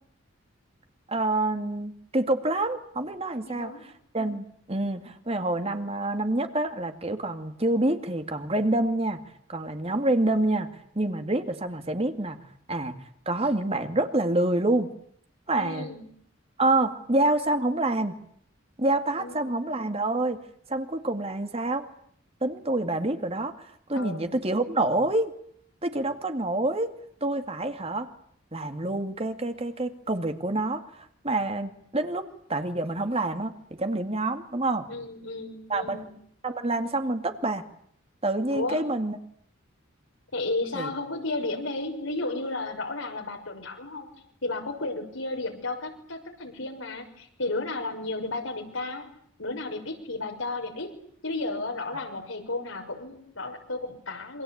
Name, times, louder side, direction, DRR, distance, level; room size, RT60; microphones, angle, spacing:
voice 1, 1.1-3.7 4.1-9.2 9.5-10.7 11.0-12.4 12.7-13.0 13.3-14.9 15.5-15.9 16.6-18.2 18.8-20.4 20.7-21.9 22.4-25.3 25.8-26.9 27.2-28.1 28.5-34.9 35.7-36.1 36.4-37.6 38.2-39.2 40.7-40.9, right 2 dB, 30° right, 8 dB, 2.3 m, -27 dB
voice 2, 3.4-3.8 15.6-16.0 19.2-19.5 23.9-24.3 34.9-36.1 38.5-38.8 40.3-44.1 44.4-49.1 49.4-50.9 51.2-54.4, left 2 dB, 85° left, 3 dB, 6.2 m, -33 dB
27.5 x 25.0 x 8.8 m, 0.65 s
head